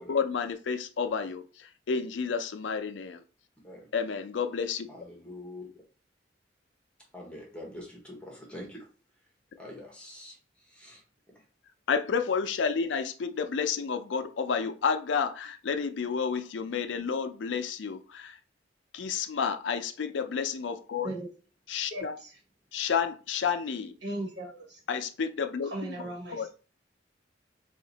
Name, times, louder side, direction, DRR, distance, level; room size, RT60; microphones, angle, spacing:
voice 1, 0.0-3.2 3.9-4.9 11.9-18.4 18.9-21.1 21.7-22.1 22.7-24.0 24.9-25.7 26.3-26.5, left 6 dB, 80° left, 0.4 m, -30 dB
voice 2, 4.9-5.8 7.1-8.9 9.6-11.0 11.3-11.4, left 1 dB, 5° left, 1.0 m, -45 dB
voice 3, 21.9-22.4 24.0-24.8 25.6-26.5, right 1 dB, 65° right, 1.5 m, -37 dB
2.7 x 2.5 x 3.9 m
head